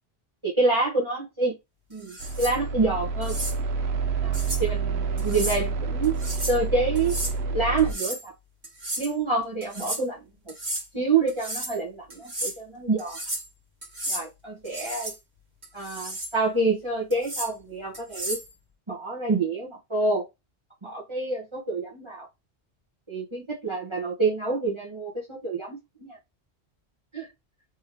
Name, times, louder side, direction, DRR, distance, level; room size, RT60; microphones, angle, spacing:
voice 1, 0.4-1.5 1.9-3.4 4.2-4.3 4.6-6.2 6.5-7.2 7.5-8.3 9.0-10.2 10.9-13.2 14.1-15.1 15.7-18.4 18.9-20.2 20.8-22.3 23.1-26.2 27.1-27.3, right 3 dB, 25° right, 1.5 m, -27 dB
sound 1, 2.0-2.5 3.2-3.6 4.3-4.6 5.2-5.6 6.0-6.6 7.0-7.3 7.8-8.3 8.6-9.1 9.6-10.0 10.5-10.9 11.3-11.8 12.1-12.6 13.0-13.5 13.8-14.2 14.6-15.2 15.6-16.3 17.1-17.5 17.9-18.5, right 1 dB, 40° right, 1.9 m, -33 dB
sound 2, 2.2-7.9, right 4 dB, 75° right, 0.9 m, -28 dB
3.7 x 3.3 x 3.3 m
omnidirectional pair, 1.1 m